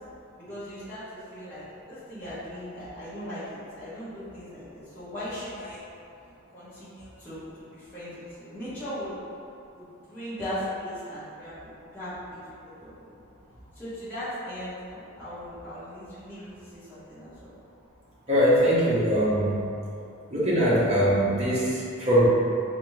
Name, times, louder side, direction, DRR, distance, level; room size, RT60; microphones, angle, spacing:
voice 1, 0.4-5.8 6.5-9.2 9.7-13.1 13.7-17.5, equal, 10° left, -14 dB, 1.0 m, -38 dB
voice 2, 18.3-19.6 20.3-22.3, equal, 30° right, -9 dB, 0.8 m, -22 dB
4.1 x 2.5 x 3.2 m, 2.6 s
head